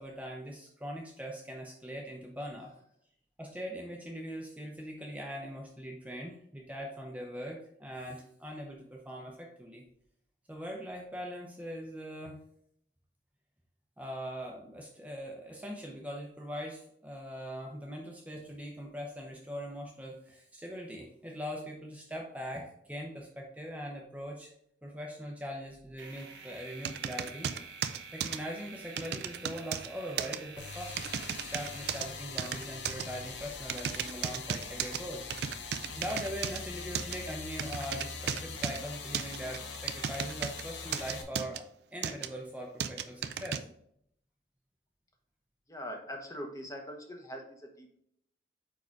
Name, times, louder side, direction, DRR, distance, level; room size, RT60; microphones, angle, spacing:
voice 1, 0.0-2.7 3.4-9.8 10.5-12.4 14.0-24.5 24.8-27.5 28.1-31.1 31.5-35.3 36.0-41.6 41.9-43.6, equal, 10° right, 0 dB, 0.6 m, -41 dB
sound 1, 26.0-32.8, right 5 dB, 90° right, 1.0 m, -50 dB
sound 2, 26.8-28.4 29.0-29.9 30.2-30.4 31.0-32.1 32.4-33.0 33.7-35.0 35.3-36.6 36.9-37.2 37.6-38.8 39.1-40.6 40.9-41.6 42.0-42.3 42.8-43.6, right 8 dB, 65° right, 0.4 m, -34 dB
sound 3, 30.6-41.2, left 4 dB, 80° left, 0.9 m, -42 dB
voice 2, 45.7-48.0, equal, 20° left, 2 dB, 0.9 m, -42 dB
4.9 x 4.8 x 4.6 m, 0.70 s
head